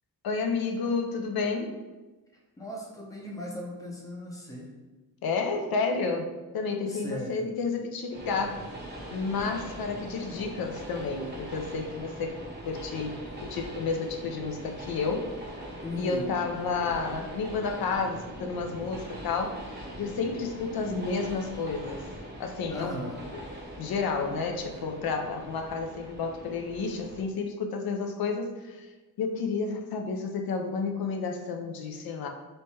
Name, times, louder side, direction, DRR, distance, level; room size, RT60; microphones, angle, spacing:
voice 1, 0.2-1.8 5.2-8.7 9.1-12.4 12.7-15.3 15.9-22.1 22.4-23.0 23.3-23.4 23.8-28.9 29.2-32.3, left 4 dB, 80° left, 4 dB, 0.5 m, -31 dB
voice 2, 2.6-4.7 6.9-7.4 15.8-16.3 22.7-23.2, left 1 dB, 10° left, -1 dB, 0.5 m, -37 dB
Train, 8.1-27.2, right 1 dB, 30° right, 0.6 m, -42 dB
3.2 x 2.2 x 4.1 m, 1.2 s
wide cardioid pair, 160°, 36 cm